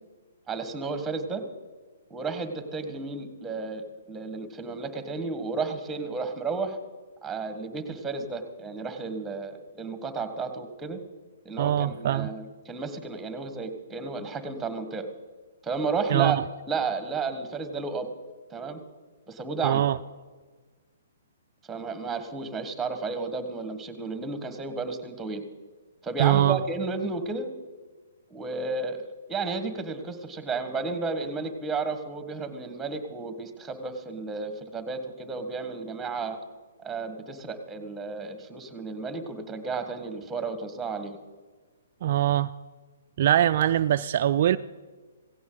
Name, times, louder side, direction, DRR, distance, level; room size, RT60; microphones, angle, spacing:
voice 1, 0.5-1.4 2.1-6.8 7.2-11.0 11.4-15.1 15.6-16.4 16.6-18.1 18.5-18.8 19.3-19.8 21.7-25.4 26.0-27.5 28.3-36.4 36.8-41.2, right 4 dB, 10° right, 1.6 m, -32 dB
voice 2, 11.6-12.3 16.1-16.4 19.6-20.0 26.2-26.6 42.0-42.5 43.2-44.6, right 11 dB, 55° right, 0.4 m, -22 dB
16.5 x 16.5 x 4.0 m
hypercardioid pair, 135°, 0 cm